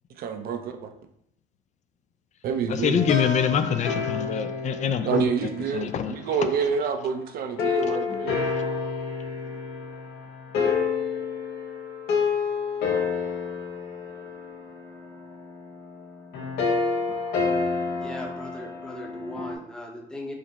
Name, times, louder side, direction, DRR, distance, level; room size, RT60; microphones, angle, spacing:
voice 1, 0.2-0.7 2.4-3.0 5.0-8.4, right 6 dB, 60° right, 6 dB, 0.6 m, -27 dB
voice 2, 2.7-5.2 5.7-6.1 8.5-8.6, left 7 dB, 45° left, 9 dB, 0.4 m, -25 dB
sound 1, 2.9-6.3 7.6-19.5, left 5 dB, 75° left, 0.9 m, -29 dB
voice 3, 18.0-20.3, left 1 dB, 5° left, 0 dB, 0.7 m, -38 dB
5.0 x 2.0 x 4.0 m, 0.74 s
cardioid pair, 110°, 17 cm